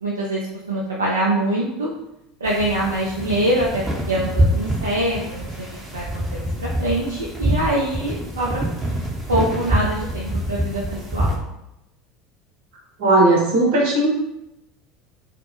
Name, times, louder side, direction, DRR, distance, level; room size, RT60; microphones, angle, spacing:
voice 1, 0.0-1.9 2.4-5.7 5.9-8.6 9.3-11.4, right 1 dB, 90° right, -5 dB, 0.3 m, -24 dB
sound 1, 2.5-11.4, equal, 15° right, 0.7 m, -25 dB
voice 2, 13.0-14.1, right 2 dB, 70° right, -3 dB, 0.8 m, -16 dB
2.1 x 2.0 x 2.9 m, 0.88 s
hypercardioid pair, 75°, 0 cm